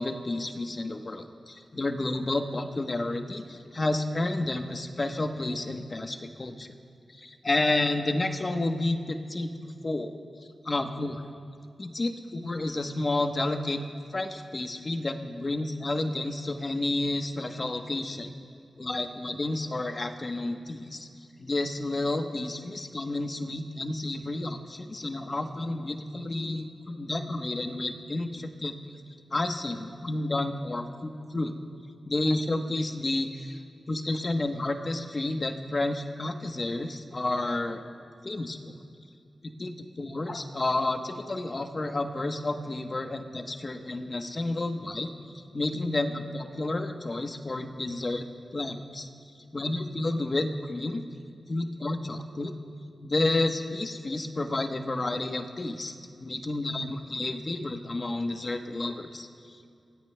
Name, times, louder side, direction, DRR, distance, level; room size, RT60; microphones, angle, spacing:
voice 1, 0.0-6.7 7.1-10.2 10.6-11.3 11.8-13.8 14.1-18.3 18.8-21.1 21.4-28.7 29.3-31.5 32.1-33.6 33.9-37.8 38.2-38.7 39.4-45.1 45.3-48.3 48.5-49.1 49.5-51.0 51.5-52.5 53.0-59.7, left 2 dB, 35° left, 5 dB, 0.9 m, -31 dB
30.0 x 17.0 x 2.2 m, 2.3 s
wide cardioid pair, 95°, 0 cm